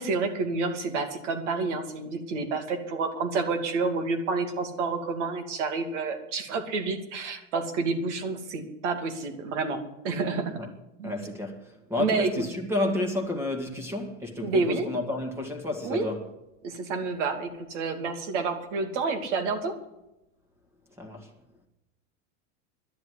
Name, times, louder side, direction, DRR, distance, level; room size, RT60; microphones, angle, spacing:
voice 1, 0.0-9.8 10.0-10.6 11.0-11.2 12.0-12.4 14.4-14.9 15.8-16.1 16.6-19.7, right 4 dB, 65° right, 2.7 m, -29 dB
voice 2, 11.0-16.2 21.0-21.3, left 2 dB, 5° right, 2.0 m, -31 dB
11.5 x 10.5 x 9.7 m
supercardioid pair, 160°, 38 cm